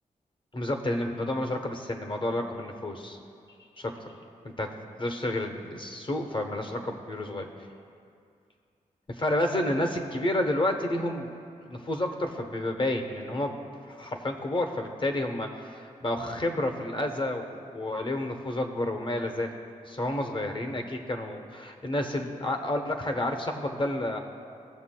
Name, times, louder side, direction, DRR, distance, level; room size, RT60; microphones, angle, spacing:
voice 1, 0.5-3.2 3.8-4.1 4.4-7.5 9.1-11.3 11.6-13.6 13.9-19.5 19.9-24.2, left 1 dB, 35° left, 4 dB, 0.9 m, -30 dB
17.5 x 6.9 x 2.2 m, 2.4 s
wide cardioid pair, 85°, 14 cm